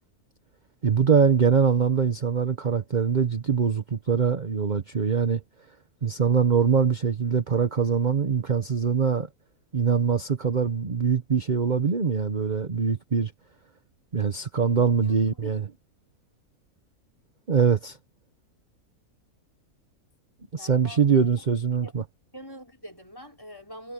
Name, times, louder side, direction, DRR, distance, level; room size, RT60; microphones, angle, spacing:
voice 1, 0.8-5.4 6.0-9.3 9.7-13.3 14.1-15.7 17.5-18.0 20.5-22.0, right 6 dB, 35° right, 1.1 m, -23 dB
voice 2, 20.5-21.3 21.8-21.9 22.3-23.9, equal, 15° left, 5.3 m, -43 dB
omnidirectional pair, 1.6 m